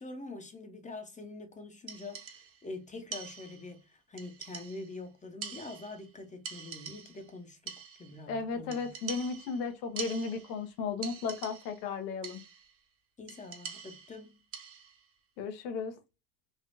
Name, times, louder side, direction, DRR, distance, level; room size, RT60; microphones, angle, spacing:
voice 1, 0.0-7.7 8.0-8.9 13.2-14.4, left 2 dB, 15° left, 0.6 m, -45 dB
sound 1, 1.9-2.7 3.1-3.8 4.2-5.0 5.4-6.2 6.5-7.3 7.7-8.2 8.7-10.7 11.0-11.9 12.2-12.7 13.3-15.0, right 6 dB, 30° right, 0.6 m, -45 dB
voice 2, 8.3-12.4 15.4-15.9, left 5 dB, 85° left, 0.9 m, -35 dB
3.5 x 2.3 x 2.5 m
supercardioid pair, 100°, 50 cm